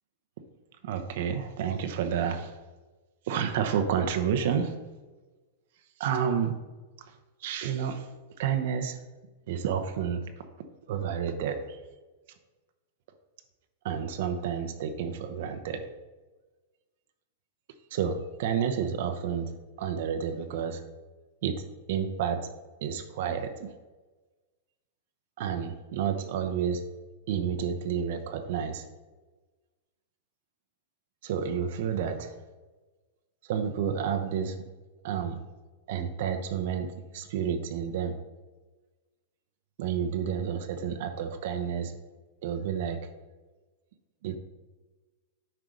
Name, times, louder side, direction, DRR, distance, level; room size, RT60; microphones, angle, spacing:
voice 1, 0.8-2.5 3.3-4.7 6.0-6.5 7.4-8.0 8.4-9.0 9.5-10.3 10.9-11.8 13.8-15.9 17.9-19.5 19.8-20.8 21.4-21.6 21.9-22.5 22.8-23.7 25.4-26.8 27.3-28.8 31.2-32.3 33.5-34.6 35.0-35.4 35.9-36.9 37.1-38.1 39.8-41.9 42.4-43.0 44.2-44.4, right 8 dB, 65° right, 7 dB, 0.7 m, -30 dB
7.7 x 4.6 x 5.1 m, 1.2 s
hypercardioid pair, 115°, 0 cm